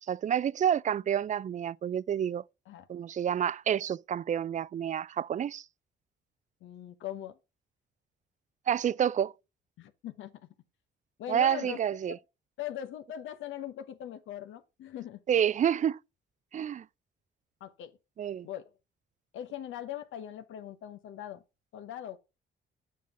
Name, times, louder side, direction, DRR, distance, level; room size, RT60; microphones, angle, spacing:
voice 1, 0.1-2.4 2.9-5.6 8.7-9.3 11.3-12.2 15.3-16.0 16.5-16.9 18.2-18.5, right 9 dB, 40° right, 0.4 m, -29 dB
voice 2, 6.6-7.4 9.8-10.3 11.2-11.8 12.1-12.2 12.6-15.2 17.6-17.9 18.4-18.7 19.3-21.4 21.7-22.2, left 11 dB, 80° left, 0.9 m, -40 dB
7.6 x 5.5 x 5.6 m
cardioid pair, 90°, 20 cm